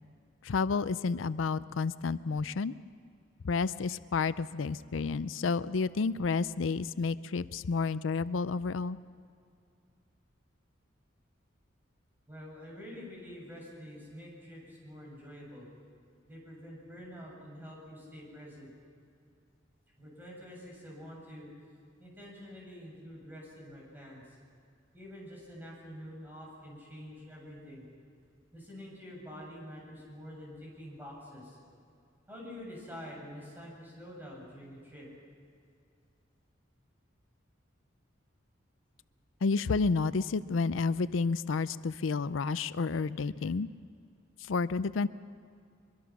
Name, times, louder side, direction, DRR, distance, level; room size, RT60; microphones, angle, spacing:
voice 1, 0.4-2.7 3.4-9.0 39.4-43.7 44.4-45.1, left 4 dB, 90° left, 15 dB, 0.5 m, -30 dB
voice 2, 12.3-15.7 16.3-18.7 20.0-21.5 22.0-24.4 24.9-27.8 28.5-31.6 32.3-35.1, equal, 10° right, -3 dB, 7.2 m, -47 dB
23.0 x 23.0 x 6.0 m, 2.4 s
head